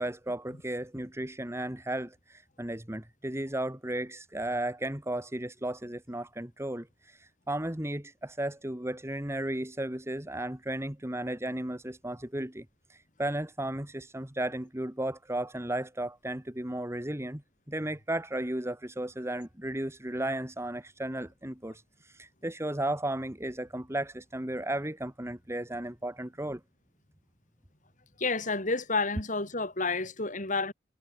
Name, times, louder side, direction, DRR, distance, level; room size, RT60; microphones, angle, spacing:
voice 1, 0.0-17.4 17.7-26.6, right 1 dB, 15° right, 2.0 m, -34 dB
voice 2, 28.2-30.7, left 3 dB, 45° left, 6.5 m, -30 dB
head